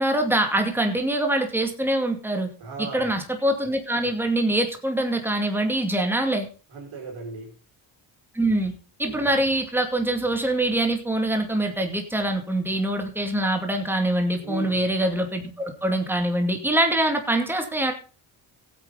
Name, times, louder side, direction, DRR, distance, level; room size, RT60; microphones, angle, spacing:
voice 1, 0.0-2.5 2.9-6.5 8.3-8.7 9.0-17.9, right 1 dB, 5° right, 4 dB, 2.4 m, -24 dB
voice 2, 2.6-3.2 6.7-7.5 9.0-9.3 14.4-14.8, right 2 dB, 75° right, 0 dB, 5.0 m, -36 dB
15.5 x 8.7 x 4.0 m, 0.36 s
supercardioid pair, 55°, 49 cm